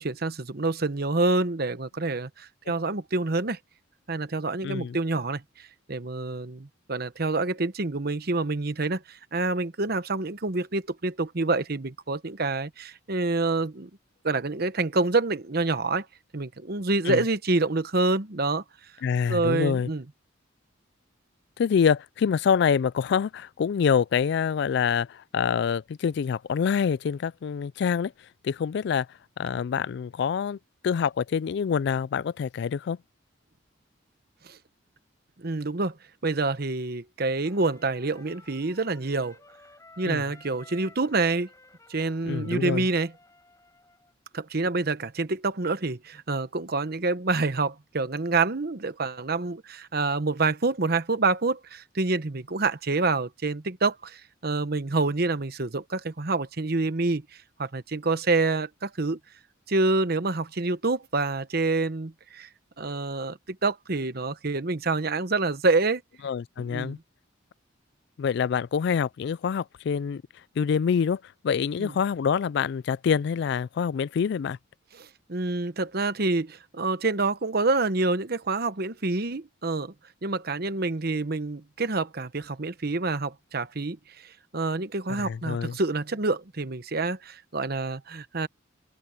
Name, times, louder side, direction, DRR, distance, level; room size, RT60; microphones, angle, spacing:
voice 1, 0.0-3.6 4.1-13.9 14.2-16.1 16.3-18.6 19.3-20.0 34.4-34.6 35.4-36.0 36.2-39.4 40.0-41.5 41.9-43.1 44.3-57.2 57.6-59.2 59.7-62.5 62.8-66.0 66.6-67.0 71.8-71.9 75.0-79.9 80.2-88.5, right 3 dB, 50° right, 1.0 m, -27 dB
voice 2, 4.6-5.0 17.1-17.2 19.0-19.9 21.6-28.1 28.4-29.1 29.4-30.6 30.8-33.0 40.0-40.2 42.3-42.9 66.2-67.0 68.2-70.2 70.6-74.6 85.1-85.8, left 7 dB, 60° left, 0.3 m, -26 dB
Trumpet, 37.4-44.2, left 3 dB, 15° left, 6.8 m, -54 dB
open air
head